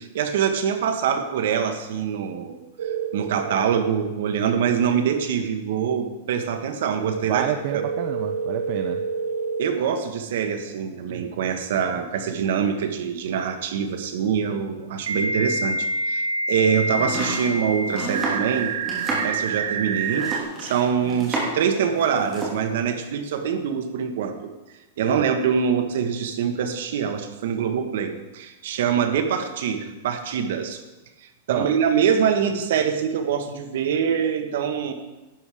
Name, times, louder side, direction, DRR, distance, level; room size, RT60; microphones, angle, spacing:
voice 1, 0.0-7.5 7.7-7.8 9.6-18.7 19.2-20.3 20.6-24.5 25.0-30.8 31.5-34.9, right 7 dB, 65° right, 7 dB, 1.4 m, -24 dB
sound 1, 2.8-3.7 7.7-9.7 12.3-12.4 15.1-20.4, right 3 dB, 85° right, 0.9 m, -27 dB
voice 2, 7.3-9.0 11.1-11.3 19.1-19.3 25.0-25.2 31.5-31.7, right 12 dB, 40° right, 7 dB, 0.6 m, -29 dB
Domestic sounds home sounds, 16.9-21.7 22.0-22.6, right 2 dB, 15° right, 3.0 m, -30 dB
12.0 x 8.8 x 4.9 m, 1.1 s
supercardioid pair, 165°, 0 cm